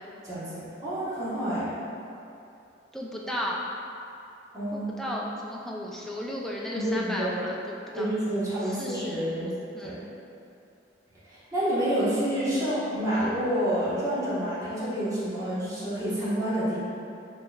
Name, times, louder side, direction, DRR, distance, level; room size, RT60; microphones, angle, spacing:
voice 1, 0.2-1.7 4.5-5.0 6.7-7.3 7.9-9.5 9.8-10.0 11.3-16.8, right 1 dB, 20° right, -12 dB, 1.2 m, -28 dB
voice 2, 2.9-3.6 4.7-8.1 8.6-9.2 9.7-10.0 12.5-12.8, left 1 dB, ahead, -4 dB, 0.3 m, -35 dB
5.1 x 3.2 x 2.3 m, 2.7 s
head